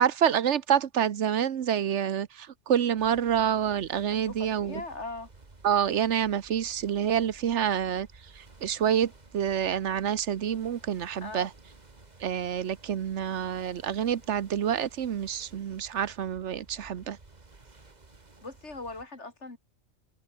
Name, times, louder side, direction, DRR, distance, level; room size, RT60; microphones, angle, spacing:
voice 1, 0.0-4.8 5.6-8.1 8.3-11.5 12.2-17.2, right 9 dB, 85° right, 1.2 m, -27 dB
sound 1, 3.0-19.1, right 3 dB, 40° right, 2.1 m, -54 dB
voice 2, 4.3-5.3 11.2-11.5 18.4-19.6, left 3 dB, 85° left, 3.8 m, -39 dB
omnidirectional pair, 1.2 m